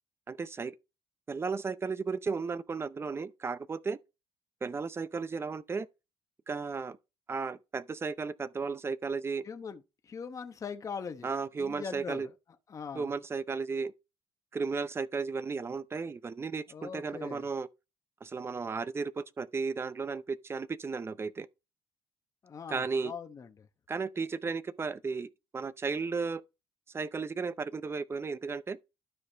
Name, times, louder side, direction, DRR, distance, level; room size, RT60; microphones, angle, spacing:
voice 1, 0.3-0.7 1.3-4.0 4.6-5.9 6.5-7.0 7.3-9.5 11.2-12.3 12.9-13.9 14.5-17.7 18.2-21.5 22.7-23.1 23.9-25.3 25.5-26.4 26.9-28.8, right 4 dB, 25° right, 0.6 m, -34 dB
voice 2, 9.4-11.3 11.6-12.3 12.7-13.1 16.7-17.5 22.4-23.7, left 6 dB, 35° left, 0.9 m, -41 dB
12.0 x 4.8 x 3.4 m
cardioid pair, 110°, 10 cm